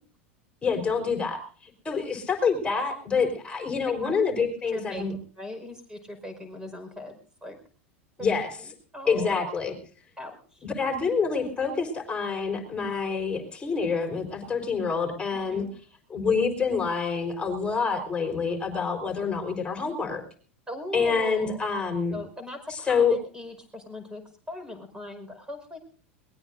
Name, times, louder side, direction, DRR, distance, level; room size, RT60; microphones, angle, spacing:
voice 1, 0.6-5.1 8.2-8.5 9.1-9.8 10.6-15.7 16.1-20.2 20.9-22.2 22.7-23.2, left 5 dB, 15° left, 3 dB, 4.5 m, -27 dB
voice 2, 4.7-5.0 5.4-7.6 8.6-9.5 10.2-10.6 15.3-15.7 20.7-21.6 22.1-24.2 24.5-25.8, left 1 dB, 10° right, 7 dB, 5.1 m, -39 dB
22.0 x 20.0 x 2.7 m, 0.42 s
hypercardioid pair, 85°, 7 cm